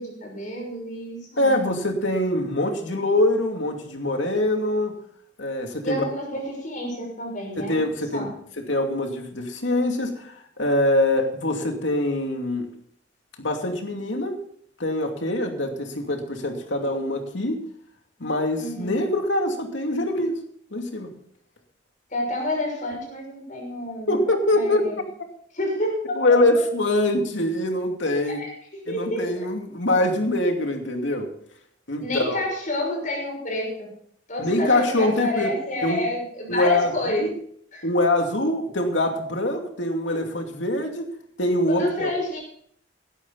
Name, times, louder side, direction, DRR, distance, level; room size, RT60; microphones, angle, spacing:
voice 1, 0.0-1.6 5.8-7.8 8.1-8.3 18.6-19.0 22.1-24.2 24.5-24.9 25.5-26.4 28.3-29.3 32.0-33.9 34.3-37.3 37.7-37.9 41.7-42.4, left 1 dB, 45° left, 0 dB, 6.4 m, -29 dB
voice 2, 1.4-5.0 5.4-6.1 7.6-8.3 8.6-12.7 13.4-14.4 14.8-17.6 18.2-20.4 20.7-21.1 24.1-24.8 26.2-28.4 28.9-31.3 31.9-32.4 34.4-35.5 35.8-36.0 36.5-37.3 37.8-41.1 41.4-42.1, left 1 dB, 75° left, 4 dB, 2.6 m, -24 dB
17.5 x 12.0 x 4.1 m, 0.64 s
head